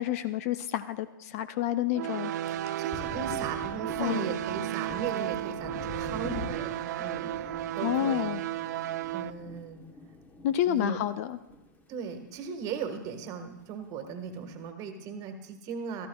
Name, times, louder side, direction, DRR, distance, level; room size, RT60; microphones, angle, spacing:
voice 1, 0.0-2.3 4.0-4.3 7.8-8.4 10.4-11.4, left 12 dB, 45° left, 13 dB, 0.5 m, -29 dB
sound 1, 1.9-9.3, right 13 dB, 55° right, 0.4 m, -33 dB
voice 2, 2.4-8.4 9.1-9.8 10.6-11.0 11.9-16.1, right 6 dB, 35° right, 7 dB, 1.5 m, -38 dB
Thunder, 2.5-12.2 12.5-13.7, left 3 dB, 15° left, 1.1 m, -46 dB
16.5 x 13.5 x 2.3 m, 0.94 s
figure-of-eight pair, 115°, 11 cm